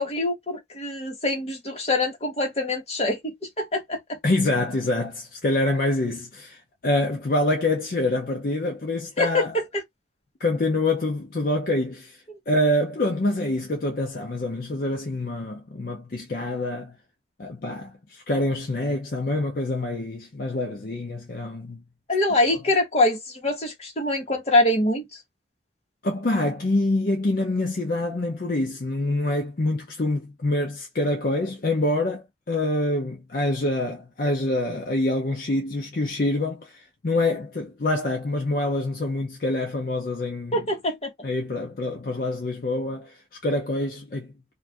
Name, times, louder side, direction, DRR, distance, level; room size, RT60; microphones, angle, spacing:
voice 1, 0.0-4.2 9.2-9.6 12.3-12.4 22.1-25.0 40.5-41.1, left 2 dB, 35° left, 1.1 m, -24 dB
voice 2, 4.2-9.5 10.4-17.0 17.4-21.8 26.0-40.6 41.2-44.3, left 2 dB, 50° left, 0.5 m, -26 dB
2.6 x 2.3 x 3.3 m
head